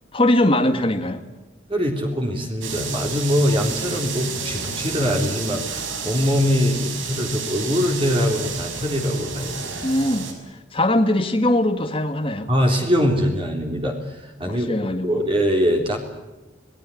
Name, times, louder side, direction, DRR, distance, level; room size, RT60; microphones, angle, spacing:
voice 1, 0.1-1.2 9.8-10.3 10.7-12.5 14.5-15.2, left 1 dB, 25° left, 6 dB, 1.9 m, -21 dB
voice 2, 1.7-9.7 12.5-14.7 15.0-16.0, equal, 25° right, 1 dB, 3.6 m, -22 dB
sound 1, 2.6-10.3, right 5 dB, 80° right, 5.6 m, -31 dB
26.0 x 19.5 x 8.6 m, 1.1 s
head